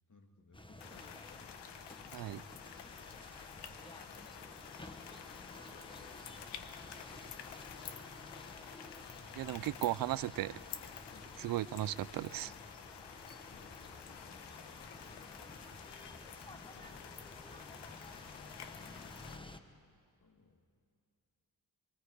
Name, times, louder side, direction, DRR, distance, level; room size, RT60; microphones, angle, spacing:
voice 1, 0.1-1.6 3.3-4.3 11.0-11.3 13.0-13.1 13.5-14.3 16.7-17.1 18.6-19.7 20.2-20.7, left 3 dB, 45° left, 4 dB, 2.5 m, -63 dB
sound 1, 0.5-19.6, left 1 dB, 10° left, 1.2 m, -53 dB
sound 2, 0.8-19.4, left 8 dB, 80° left, 1.1 m, -50 dB
voice 2, 9.4-10.6 11.4-12.5, right 14 dB, 55° right, 20 dB, 0.5 m, -36 dB
26.5 x 22.5 x 4.9 m, 2.3 s
cardioid pair, 70°, 41 cm